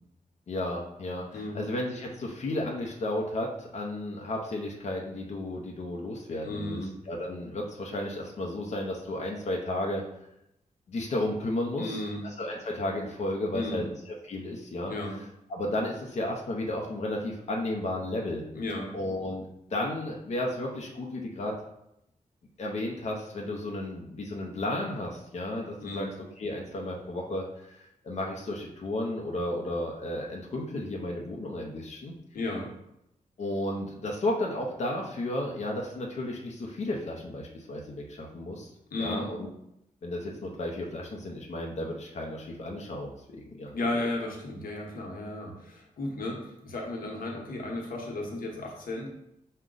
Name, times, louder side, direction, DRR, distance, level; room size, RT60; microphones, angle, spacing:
voice 1, 0.5-6.8 7.1-10.0 10.9-14.9 15.5-18.5 18.9-19.4 19.7-21.5 22.6-26.1 26.4-32.1 33.4-38.7 39.0-39.5 40.0-43.1 43.6-43.7, left 1 dB, 50° left, -1 dB, 0.6 m, -33 dB
voice 2, 6.4-6.9 11.8-12.2 13.5-13.9 14.9-15.2 18.5-18.9 25.8-26.1 32.3-32.7 38.9-39.2 43.7-49.1, left 2 dB, 85° left, 0 dB, 0.9 m, -34 dB
6.1 x 2.2 x 3.8 m, 0.82 s
wide cardioid pair, 155°, 15 cm